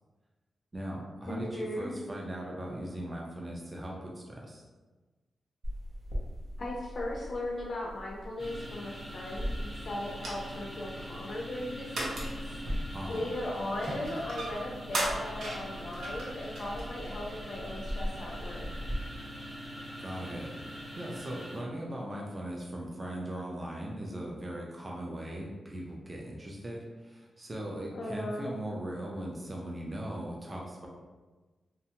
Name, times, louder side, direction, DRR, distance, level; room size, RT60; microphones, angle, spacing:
voice 1, 0.7-4.6 12.9-13.2 20.0-30.9, right 1 dB, 20° right, -2 dB, 0.4 m, -39 dB
voice 2, 1.3-1.9 6.6-12.3 13.1-18.7 27.9-28.5, left 1 dB, 45° left, -2 dB, 0.4 m, -37 dB
sound 1, 5.6-19.0, equal, 75° right, 0.7 m, -38 dB
sound 2, 8.4-21.6, equal, ahead, 0.9 m, -43 dB
2.8 x 2.2 x 2.8 m, 1.3 s
wide cardioid pair, 150°, 0 cm